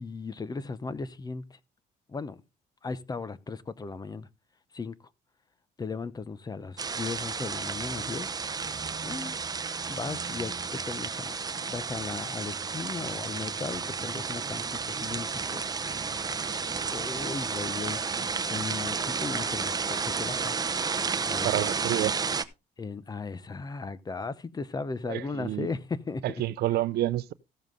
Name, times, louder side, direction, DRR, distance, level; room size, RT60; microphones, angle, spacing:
voice 1, 0.0-1.6 2.1-2.4 2.8-4.3 4.7-5.0 5.8-8.3 9.0-9.4 9.9-15.7 16.2-18.0 18.5-20.5 21.2-21.5 22.8-26.3, left 4 dB, 25° left, 0.8 m, -36 dB
sound 1, 6.8-22.4, right 5 dB, 25° right, 0.8 m, -32 dB
voice 2, 21.4-22.1 25.1-25.7 26.2-27.3, right 14 dB, 70° right, 0.6 m, -29 dB
14.5 x 7.2 x 3.8 m
cardioid pair, 110°, 17 cm